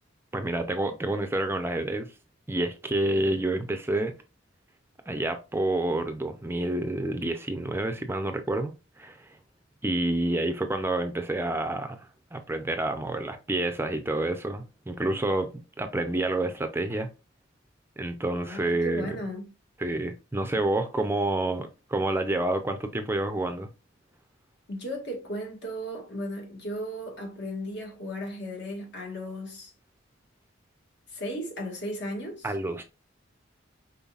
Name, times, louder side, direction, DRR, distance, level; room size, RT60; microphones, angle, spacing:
voice 1, 0.3-2.1 2.5-4.1 5.1-9.4 9.8-17.1 18.0-19.2 19.8-23.7 32.4-32.8, right 1 dB, 10° right, 0.5 m, -29 dB
voice 2, 18.4-19.5 24.7-29.7 31.1-32.5, equal, 60° left, 1.7 m, -35 dB
5.5 x 3.8 x 2.4 m
head